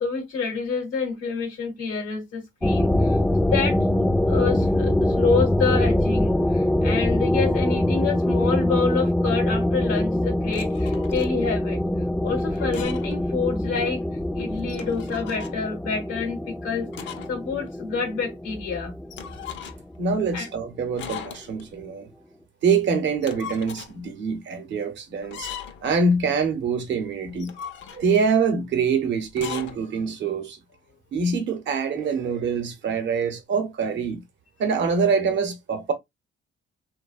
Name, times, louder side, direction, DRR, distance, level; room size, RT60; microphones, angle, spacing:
voice 1, 0.0-3.2 3.4-3.8 4.3-11.8 12.2-14.0 14.3-18.9 20.3-20.5 27.9-28.0, left 5 dB, 90° left, 0.8 m, -28 dB
sound 1, 2.6-20.0, left 1 dB, 5° left, 0.3 m, -24 dB
sound 2, 10.5-11.3 12.5-13.2 13.5-13.6 14.6-15.6 16.9-17.4 17.7-17.8 19.1-20.0 21.0-21.7 23.1-23.9 25.2-25.9 27.3-28.3 29.3-29.8, left 8 dB, 70° left, 0.5 m, -38 dB
voice 2, 20.0-22.1 22.6-25.5 25.8-27.5 27.9-30.6 31.1-34.2 34.6-35.9, right 5 dB, 65° right, 0.8 m, -24 dB
2.7 x 2.2 x 2.3 m
cardioid pair, 90°, 20 cm